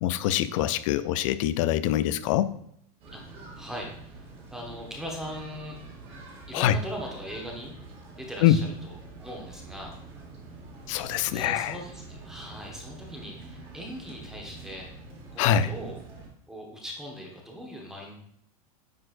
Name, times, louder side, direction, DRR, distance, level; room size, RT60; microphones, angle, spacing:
voice 1, 0.0-2.5 6.5-6.8 8.4-8.7 10.9-11.8 15.4-15.7, left 11 dB, 60° left, 15 dB, 0.4 m, -24 dB
sound 1, 3.0-16.3, right 3 dB, 30° right, 2.0 m, -46 dB
voice 2, 3.1-5.8 6.5-7.7 8.2-10.0 11.3-14.9 15.3-16.0 16.5-18.1, equal, 5° right, -1 dB, 1.1 m, -40 dB
9.3 x 4.3 x 2.5 m, 0.70 s
supercardioid pair, 150°, 19 cm